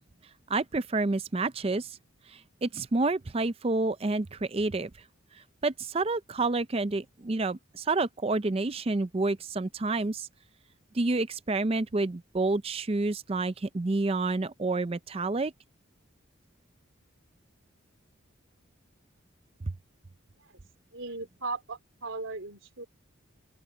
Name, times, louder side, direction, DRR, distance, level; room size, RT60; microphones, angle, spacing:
voice 1, 0.5-1.9 2.6-4.9 5.6-10.3 10.9-15.5, right 3 dB, 30° right, 0.5 m, -29 dB
voice 2, 20.9-22.9, right 3 dB, 70° right, 3.9 m, -37 dB
open air
head